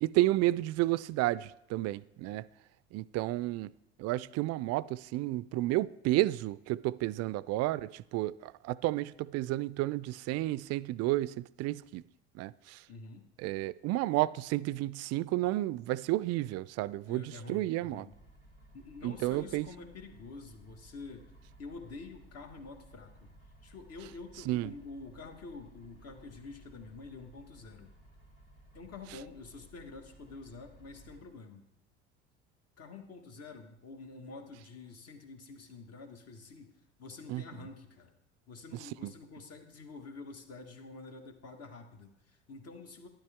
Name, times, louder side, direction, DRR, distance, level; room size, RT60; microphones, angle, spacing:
voice 1, 0.0-2.5 2.9-3.7 4.0-12.0 12.3-12.9 13.4-18.1 19.0-19.7 24.5-24.7 37.3-37.4 38.7-39.1, right 17 dB, 45° right, 0.4 m, -31 dB
voice 2, 12.9-13.2 17.1-18.1 18.7-21.3 21.6-23.3 23.6-27.9 28.7-31.6 32.8-38.1 38.5-43.1, left 3 dB, 45° left, 1.6 m, -48 dB
sound 1, 18.1-31.2, right 1 dB, 80° left, 2.7 m, -58 dB
12.0 x 10.0 x 3.6 m
hypercardioid pair, 65°, 35 cm